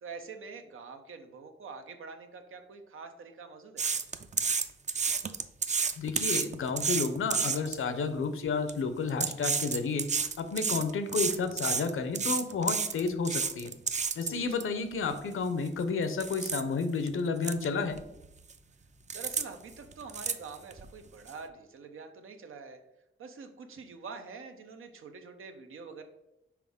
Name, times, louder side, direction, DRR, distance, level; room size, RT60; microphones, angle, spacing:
voice 1, 0.0-3.8 14.3-14.9 19.1-22.8 23.2-26.0, right 4 dB, 90° right, 6 dB, 0.8 m, -46 dB
sound 1, 3.8-7.8 8.5-8.7 9.1-14.6 15.1-15.2 15.7-15.8 16.2-16.6 17.1-17.2 17.4-17.7 17.9-18.5 19.1-19.4 19.7-20.9 21.3-21.4, right 5 dB, 35° right, 0.4 m, -31 dB
voice 2, 6.0-10.1 10.4-13.7 14.2-18.0, left 4 dB, 85° left, 9 dB, 0.7 m, -31 dB
5.9 x 4.8 x 3.6 m, 0.91 s
wide cardioid pair, 120°, 21 cm